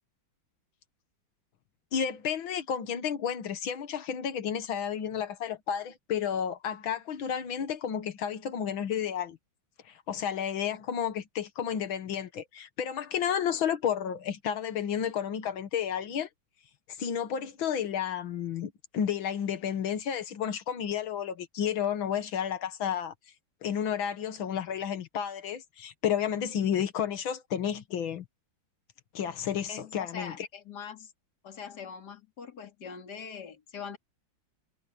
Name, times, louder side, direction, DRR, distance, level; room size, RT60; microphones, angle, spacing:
voice 1, 1.9-9.4 9.9-16.3 17.0-23.1 23.6-28.3 29.1-30.3, left 8 dB, 75° left, 2.1 m, -31 dB
voice 2, 29.7-31.1 31.4-34.0, left 6 dB, 55° left, 3.0 m, -42 dB
omnidirectional pair, 2.2 m